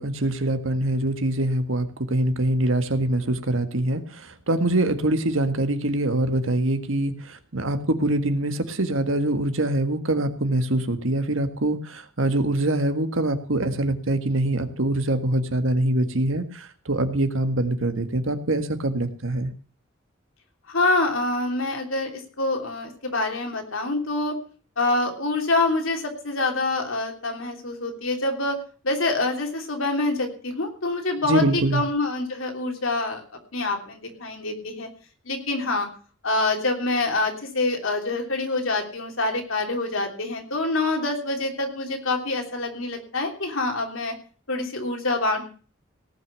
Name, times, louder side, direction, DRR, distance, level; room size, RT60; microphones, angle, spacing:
voice 1, 0.0-19.5 31.2-31.8, right 1 dB, 75° right, 9 dB, 1.7 m, -24 dB
voice 2, 20.7-24.4 24.8-28.6 28.8-33.2 33.5-34.9 35.2-35.9 36.2-44.1 44.5-45.5, left 2 dB, 80° left, 3 dB, 3.3 m, -26 dB
18.0 x 6.2 x 8.1 m, 0.40 s
head